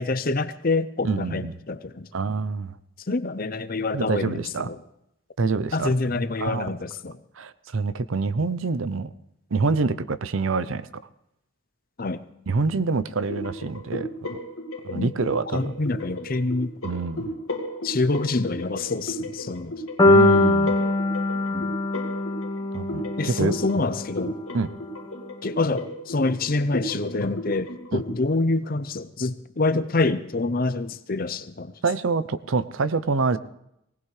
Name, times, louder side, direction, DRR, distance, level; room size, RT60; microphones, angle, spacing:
voice 1, 0.0-2.1 3.1-4.8 5.7-7.1 12.0-12.2 14.9-15.1 15.5-16.7 17.8-19.7 21.5-21.7 23.2-24.3 25.4-31.7, left 3 dB, 45° left, 13 dB, 0.6 m, -26 dB
voice 2, 1.0-1.6 2.1-2.8 3.9-4.7 5.4-6.8 7.4-9.1 9.5-10.9 12.5-14.4 14.8-15.8 16.8-17.3 20.1-20.8 22.7-23.5 24.5-24.7 27.9-28.0 31.8-33.4, right 4 dB, 70° right, 15 dB, 0.6 m, -26 dB
sound 1, 13.3-28.2, left 1 dB, 75° left, 2.3 m, -35 dB
sound 2, 20.0-24.1, left 2 dB, 20° left, 1.5 m, -22 dB
19.5 x 18.0 x 3.3 m, 0.79 s
head